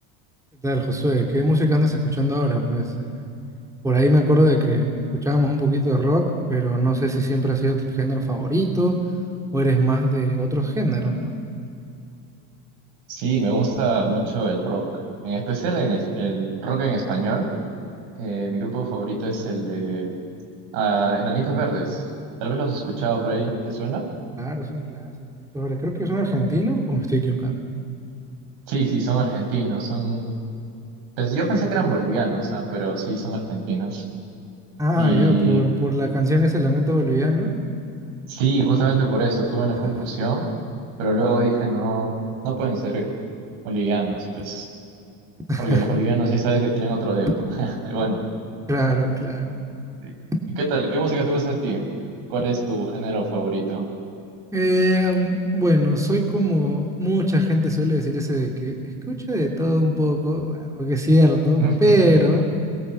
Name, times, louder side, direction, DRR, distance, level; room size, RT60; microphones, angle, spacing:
voice 1, 0.6-3.1 3.8-9.0 9.5-11.4 24.4-27.6 34.8-37.6 39.8-40.1 45.5-46.0 48.7-49.5 54.5-62.5, equal, 10° right, 0 dB, 2.8 m, -21 dB
voice 2, 13.1-14.9 15.2-17.5 18.2-20.2 20.7-22.0 22.4-24.1 28.7-30.3 31.2-34.0 35.0-35.6 38.3-40.5 41.0-42.1 42.4-43.1 43.6-44.7 45.6-47.3 47.6-48.2 50.0-50.1 50.6-51.8 52.3-53.8 61.6-61.7, right 3 dB, 80° right, 2 dB, 7.0 m, -24 dB
29.5 x 22.0 x 8.3 m, 2.6 s
cardioid pair, 140°, 42 cm